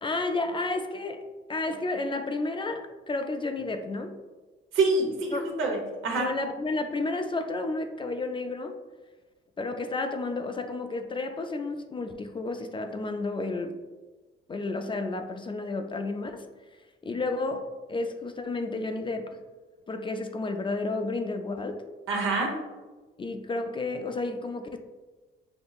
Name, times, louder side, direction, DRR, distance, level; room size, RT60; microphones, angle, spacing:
voice 1, 0.0-4.1 5.3-5.5 6.2-8.8 9.6-13.8 14.5-16.5 17.0-19.4 19.9-21.8 23.2-24.8, left 2 dB, 25° left, 6 dB, 0.4 m, -31 dB
voice 2, 4.7-6.3 22.1-22.5, right 3 dB, 80° right, 0 dB, 1.0 m, -26 dB
5.3 x 2.9 x 2.4 m, 1.2 s
cardioid pair, 90°, 20 cm